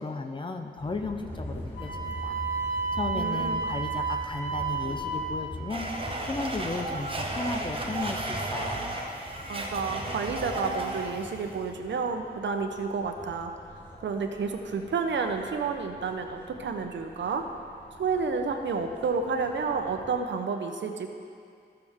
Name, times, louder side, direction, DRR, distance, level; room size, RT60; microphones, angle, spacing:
voice 1, 0.0-2.4 2.7-8.8, left 3 dB, 25° left, 5 dB, 0.5 m, -35 dB
sound 1, 0.8-20.2, left 1 dB, 10° left, 1.2 m, -44 dB
Wind instrument woodwind instrument, 1.7-5.3, right 4 dB, 75° left, 1.5 m, -31 dB
voice 2, 3.1-3.6 9.5-13.5 14.0-17.5 18.0-21.1, right 5 dB, 80° right, 5 dB, 0.8 m, -30 dB
Domestic sounds home sounds, 5.7-11.4, right 2 dB, 30° right, 0.9 m, -34 dB
13.5 x 6.8 x 3.5 m, 2.3 s
wide cardioid pair, 130°, 18 cm